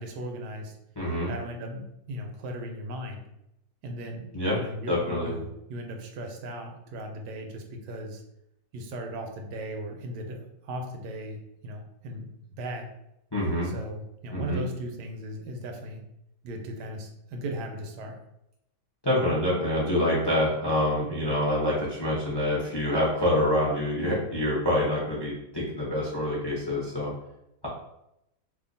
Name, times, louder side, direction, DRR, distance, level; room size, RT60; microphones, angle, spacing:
voice 1, 0.0-0.8 1.3-3.2 3.8-4.3 4.5-8.2 8.7-12.3 12.6-12.9 13.6-16.0 16.4-18.2, right 1 dB, 80° right, 3 dB, 1.2 m, -37 dB
voice 2, 1.0-1.3 4.3-4.6 4.9-5.3 13.3-13.7 14.3-14.6 19.0-27.1, left 1 dB, 25° left, -5 dB, 0.5 m, -26 dB
2.8 x 2.4 x 3.8 m, 0.82 s
omnidirectional pair, 1.8 m